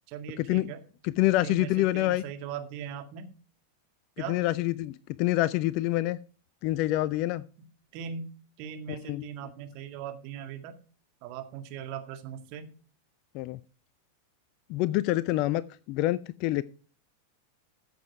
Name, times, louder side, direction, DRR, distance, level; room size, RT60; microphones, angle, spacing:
voice 1, 0.1-0.8 1.4-3.3 4.2-4.4 7.9-10.8 11.2-12.7, right 8 dB, 45° right, 2.0 m, -39 dB
voice 2, 1.0-2.2 4.3-6.2 6.6-7.4 8.9-9.3 13.3-13.6 14.7-15.6 15.9-16.6, left 16 dB, 45° left, 0.5 m, -26 dB
14.5 x 7.7 x 4.6 m
figure-of-eight pair, 90°, 0 cm